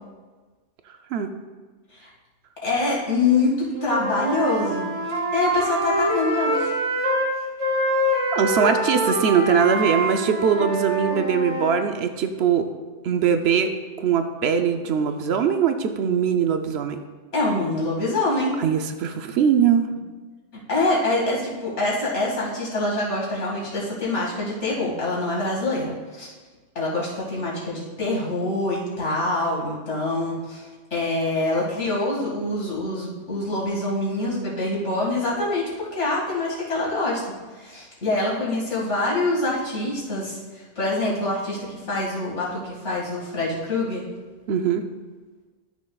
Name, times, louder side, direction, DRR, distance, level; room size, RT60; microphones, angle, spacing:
voice 1, 2.6-4.9 5.3-6.7 17.3-18.6 20.7-26.3 26.8-44.0, left 2 dB, 75° left, -5 dB, 2.5 m, -25 dB
Wind instrument woodwind instrument, 3.7-7.3 7.6-11.8, equal, 30° right, 1.4 m, -25 dB
voice 2, 8.3-12.7 13.0-13.7 14.0-17.0 18.6-19.9 44.5-44.8, right 7 dB, 65° right, 7 dB, 0.9 m, -21 dB
12.5 x 6.2 x 2.3 m, 1.3 s
omnidirectional pair, 1.2 m